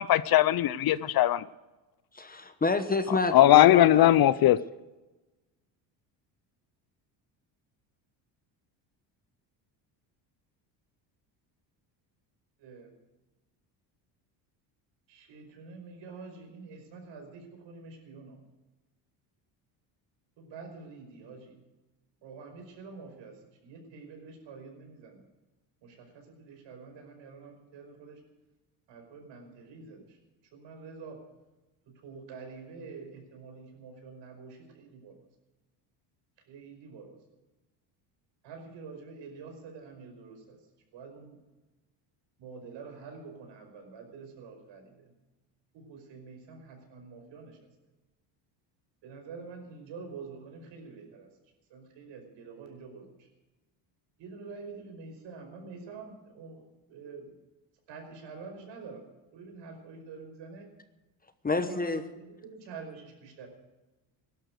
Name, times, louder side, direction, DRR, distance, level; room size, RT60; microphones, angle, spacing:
voice 1, 0.0-1.4 3.3-4.6, left 13 dB, 50° left, 18 dB, 0.6 m, -20 dB
voice 2, 2.1-4.1 61.4-62.0, left 3 dB, 20° left, 10 dB, 1.0 m, -29 dB
voice 3, 12.6-12.9 15.1-18.4 20.4-21.6 22.2-25.2 25.8-28.2 28.9-30.2 30.5-31.2 31.9-35.1 36.5-37.2 38.4-40.6 40.9-41.4 42.4-45.1 45.7-47.6 49.0-51.3 51.7-53.3 54.2-57.3 57.9-59.0 59.3-60.7 61.5-63.5, right 4 dB, 65° right, 4 dB, 5.2 m, -47 dB
16.5 x 12.0 x 6.5 m, 1.1 s
cardioid pair, 100°, 47 cm